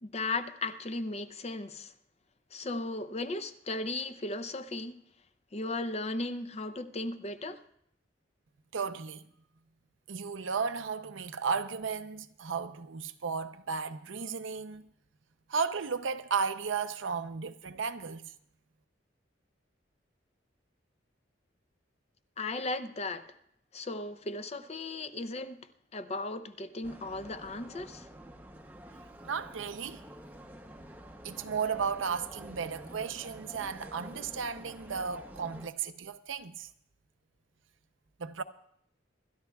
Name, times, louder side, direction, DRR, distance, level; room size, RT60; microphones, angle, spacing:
voice 1, 0.0-1.9 2.5-5.0 5.5-7.6 22.4-23.3 23.7-25.6 25.9-28.1, left 2 dB, 35° left, 0.6 m, -36 dB
voice 2, 8.7-9.2 10.1-14.9 15.5-18.3 29.2-30.0 31.2-36.7 38.2-38.4, right 5 dB, 80° right, 0.6 m, -34 dB
sound 1, 26.8-35.7, equal, 10° right, 0.7 m, -49 dB
26.5 x 12.5 x 2.3 m
head